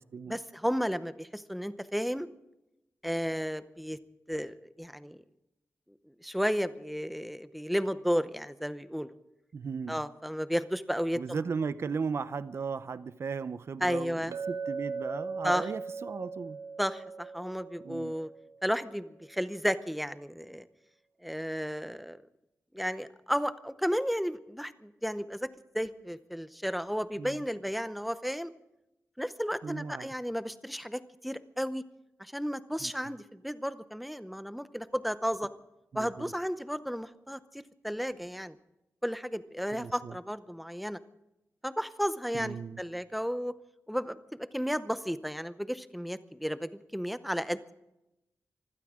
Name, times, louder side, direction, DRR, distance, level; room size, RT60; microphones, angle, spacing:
voice 1, 0.3-2.3 3.0-4.0 4.3-5.2 6.2-9.1 9.9-11.4 13.8-14.3 15.4-15.7 16.8-18.3 18.6-20.7 21.2-22.2 22.7-25.5 25.7-28.5 29.2-31.8 32.2-35.5 35.9-38.6 39.0-41.0 41.6-43.5 43.9-44.2 44.5-47.7, equal, ahead, 0.7 m, -33 dB
voice 2, 9.5-10.0 11.2-16.6 17.8-18.1 27.2-27.4 29.6-30.1 32.8-32.9 35.9-36.3 39.7-40.1 42.3-42.8, right 5 dB, 50° right, 0.7 m, -36 dB
Chink clink, 14.3-18.5, right 4 dB, 85° right, 1.5 m, -39 dB
25.0 x 15.5 x 3.7 m
wide cardioid pair, 175°, 6 cm